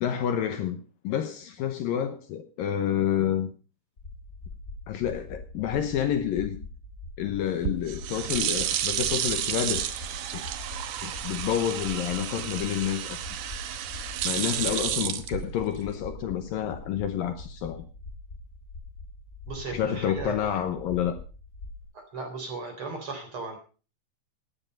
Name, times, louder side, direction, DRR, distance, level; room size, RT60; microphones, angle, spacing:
voice 1, 0.0-3.5 4.9-6.6 7.2-9.8 10.3-10.4 11.0-13.2 14.2-17.8 19.7-21.2, left 10 dB, 70° left, 2.5 m, -29 dB
sound 1, 4.0-21.8, left 2 dB, 20° left, 3.4 m, -43 dB
sound 2, 7.5-15.9, right 11 dB, 70° right, 2.0 m, -31 dB
voice 2, 19.5-20.6 21.9-23.6, right 3 dB, 35° right, 4.3 m, -36 dB
15.5 x 9.8 x 5.3 m
omnidirectional pair, 4.6 m